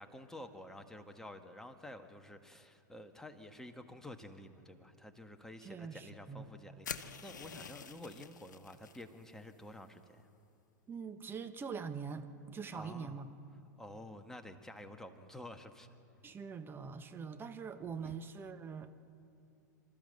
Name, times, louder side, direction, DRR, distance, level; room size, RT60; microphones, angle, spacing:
voice 1, 0.0-10.2 12.7-13.2 13.8-15.9 18.0-18.1, left 1 dB, 5° left, 6 dB, 1.6 m, -50 dB
voice 2, 5.6-6.5 10.9-13.3 16.2-18.9, right 5 dB, 20° right, 8 dB, 1.3 m, -43 dB
sound 1, 6.8-9.0, left 7 dB, 80° left, 1.0 m, -46 dB
28.0 x 13.5 x 7.8 m, 2.6 s
hypercardioid pair, 95°, 10 cm